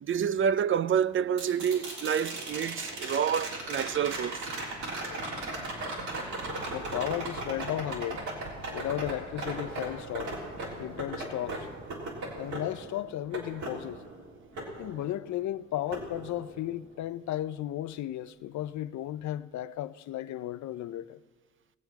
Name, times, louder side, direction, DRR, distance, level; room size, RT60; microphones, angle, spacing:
voice 1, 0.0-4.5, right 8 dB, 40° right, 0.5 m, -28 dB
sound 1, 1.4-15.5 15.9-16.9 19.2-19.3, right 2 dB, 70° right, 3.6 m, -38 dB
voice 2, 5.0-5.4 6.7-8.3 8.7-10.3 10.8-11.7 12.4-14.0 14.8-21.2, left 13 dB, 70° left, 0.5 m, -35 dB
19.5 x 8.0 x 5.8 m
cardioid pair, 90°, 30 cm